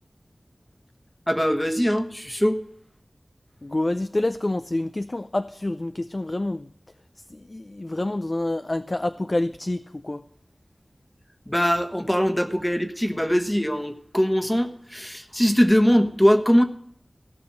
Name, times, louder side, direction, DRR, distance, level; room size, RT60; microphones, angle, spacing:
voice 1, 1.3-2.6 11.5-16.6, equal, 10° left, 7 dB, 1.3 m, -21 dB
voice 2, 3.6-6.7 7.3-10.2, left 2 dB, 40° left, 11 dB, 0.4 m, -27 dB
15.5 x 6.1 x 7.7 m, 0.68 s
wide cardioid pair, 65°, 0 cm